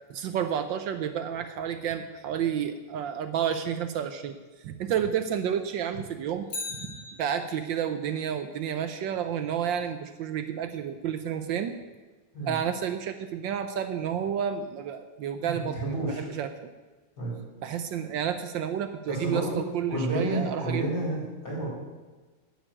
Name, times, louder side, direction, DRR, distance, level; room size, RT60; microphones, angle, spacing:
voice 1, 0.1-11.7 12.4-16.7 17.6-20.9, right 8 dB, 70° right, 9 dB, 1.4 m, -31 dB
Bicycle, 6.4-7.8 16.2-16.3, left 3 dB, 80° left, 2.5 m, -39 dB
voice 2, 15.4-16.3 17.2-17.4 19.1-19.6 19.9-21.7, right 1 dB, 50° left, -6 dB, 5.8 m, -30 dB
10.0 x 7.1 x 8.9 m, 1.3 s
omnidirectional pair, 2.2 m